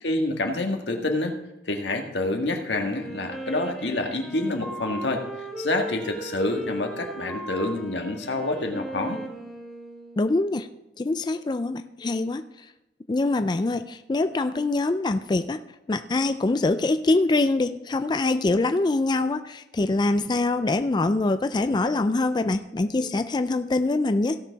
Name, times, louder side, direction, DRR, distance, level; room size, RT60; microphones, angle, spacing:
voice 1, 0.0-1.4 1.6-5.2 5.6-9.2, left 2 dB, 90° left, 3 dB, 1.6 m, -27 dB
Wind instrument woodwind instrument, 2.8-10.5, right 1 dB, ahead, 1.9 m, -37 dB
voice 2, 10.2-10.7 11.0-12.4 13.1-15.6 15.9-24.4, left 2 dB, 25° left, 9 dB, 0.3 m, -24 dB
16.5 x 6.5 x 4.0 m, 0.92 s
head